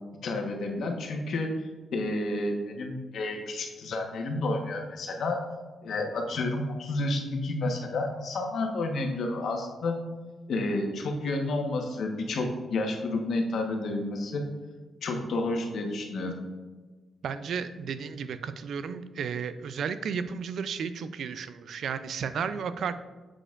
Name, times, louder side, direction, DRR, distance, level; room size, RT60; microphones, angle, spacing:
voice 1, 0.2-5.4 5.8-10.0 10.5-14.4 15.0-16.4, left 2 dB, 70° left, 2 dB, 1.2 m, -30 dB
voice 2, 17.2-22.9, right 6 dB, 75° right, 12 dB, 0.4 m, -33 dB
7.5 x 6.4 x 2.5 m, 1.3 s
cardioid pair, 120°, 0 cm